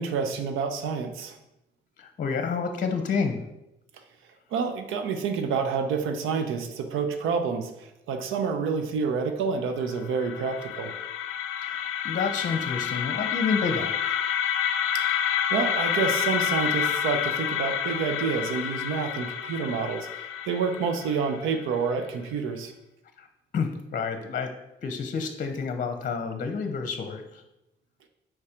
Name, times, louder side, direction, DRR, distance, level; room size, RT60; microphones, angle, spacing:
voice 1, 0.0-1.4 4.5-10.9 14.9-15.0 15.5-20.1 20.5-22.7, right 5 dB, 90° right, 7 dB, 0.7 m, -28 dB
voice 2, 2.0-3.4 11.6-13.9 23.2-23.3 23.5-24.5 24.8-27.4, left 5 dB, 40° left, 7 dB, 0.7 m, -29 dB
sound 1, 9.9-21.9, left 9 dB, 85° left, 0.5 m, -29 dB
4.7 x 4.3 x 5.0 m, 0.90 s
cardioid pair, 90°, 20 cm